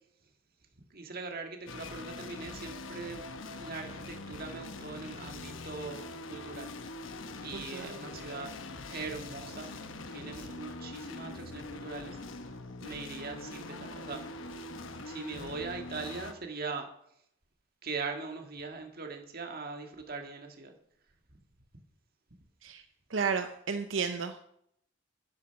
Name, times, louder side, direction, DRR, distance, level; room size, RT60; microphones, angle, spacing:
voice 1, 0.9-3.2 3.5-6.7 7.4-8.5 8.9-9.7 10.1-12.2 12.8-14.2 15.1-16.9 17.8-20.7, right 4 dB, 50° right, 3 dB, 1.8 m, -41 dB
sound 1, 1.7-16.3, left 2 dB, 90° left, 1.0 m, -43 dB
voice 2, 7.5-7.9 22.6-22.8 23.1-24.4, right 5 dB, 80° right, 8 dB, 0.7 m, -32 dB
10.5 x 9.7 x 5.8 m, 0.74 s
head